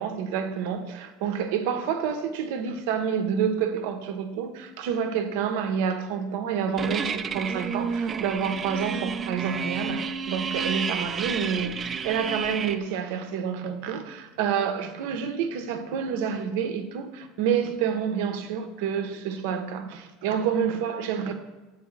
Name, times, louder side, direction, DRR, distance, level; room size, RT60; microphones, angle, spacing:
voice 1, 0.0-21.3, right 7 dB, 70° right, 0.6 m, -28 dB
sound 1, 6.8-12.8, right 6 dB, 30° right, 0.3 m, -31 dB
7.2 x 4.3 x 3.1 m
supercardioid pair, 100°, 0 cm